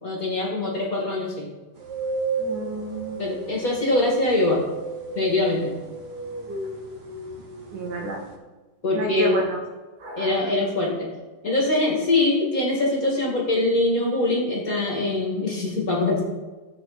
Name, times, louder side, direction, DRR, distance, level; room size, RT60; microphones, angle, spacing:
voice 1, 0.0-1.5 3.2-4.6 5.1-5.7 8.8-9.4 10.2-11.1 11.4-16.2, left 2 dB, 30° left, -3 dB, 2.3 m, -23 dB
sound 1, 1.8-8.3, right 4 dB, 45° right, 1.5 m, -33 dB
voice 2, 2.4-3.2 6.5-6.6 7.7-8.2 8.9-9.6 10.0-10.3, equal, 85° right, -1 dB, 3.6 m, -30 dB
13.5 x 8.5 x 4.2 m, 1.3 s
omnidirectional pair, 3.4 m